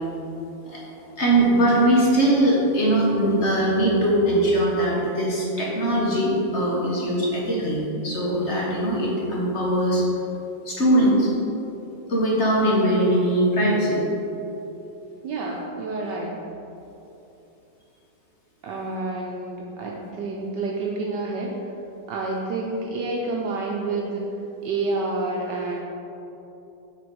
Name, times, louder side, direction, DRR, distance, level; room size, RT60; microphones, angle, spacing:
voice 1, 1.2-10.0 10.6-11.3 12.1-14.0, right 1 dB, 40° left, -4 dB, 1.2 m, -21 dB
voice 2, 15.2-16.4 18.6-21.5 22.1-24.2 24.6-25.8, right 3 dB, 70° right, -2 dB, 1.2 m, -28 dB
6.8 x 4.6 x 5.2 m, 3.0 s
omnidirectional pair, 2.0 m